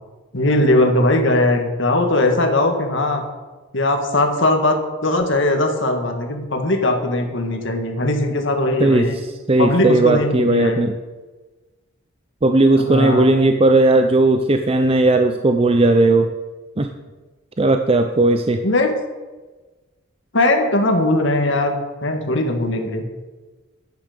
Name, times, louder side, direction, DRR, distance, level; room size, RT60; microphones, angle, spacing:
voice 1, 0.3-3.2 3.7-4.8 5.0-9.2 9.6-10.8 12.8-13.3 18.6-18.9 20.3-23.0, left 2 dB, 65° left, 4 dB, 1.9 m, -19 dB
voice 2, 8.8-11.0 12.4-16.3 16.8-16.9 17.6-18.6, right 2 dB, 30° right, 6 dB, 0.6 m, -16 dB
10.0 x 9.8 x 6.7 m, 1.2 s
head